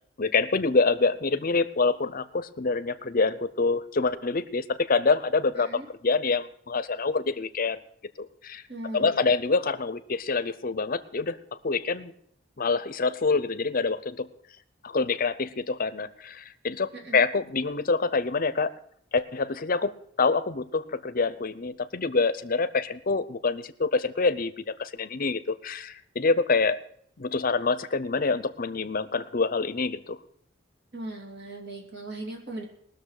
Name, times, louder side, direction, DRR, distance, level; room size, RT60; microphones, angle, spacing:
voice 1, 0.2-5.7 6.0-7.8 8.2-8.6 8.9-11.4 11.6-12.1 12.6-14.3 14.8-18.7 19.1-19.9 20.2-24.5 24.8-26.8 27.2-30.2, left 4 dB, 45° left, 14 dB, 0.7 m, -26 dB
voice 2, 5.6-5.9 8.7-9.3 16.9-17.2 30.9-32.6, right 2 dB, 60° right, 0 dB, 2.8 m, -38 dB
19.5 x 6.7 x 6.5 m, 0.68 s
head